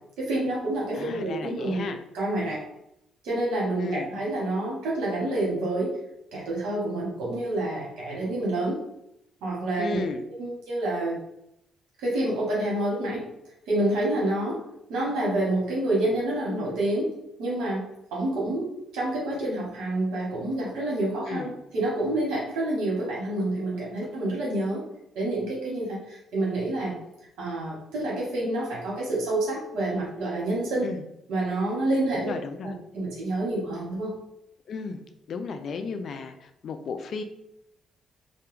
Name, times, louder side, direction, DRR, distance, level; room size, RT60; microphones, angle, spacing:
voice 1, 0.2-1.9 2.1-2.6 3.2-5.9 6.3-8.8 9.4-10.0 10.4-11.2 12.0-13.2 13.7-14.6 14.9-24.9 25.1-27.0 27.4-30.9 31.3-32.4 32.6-34.1, right 1 dB, 90° right, -4 dB, 1.0 m, -28 dB
voice 2, 0.9-2.0 3.8-4.1 9.8-10.3 21.3-21.5 30.8-31.0 32.1-32.7 34.7-35.0 35.3-37.2, left 4 dB, 60° left, 7 dB, 0.3 m, -34 dB
2.3 x 2.2 x 3.0 m, 0.81 s
cardioid pair, 90°, 0 cm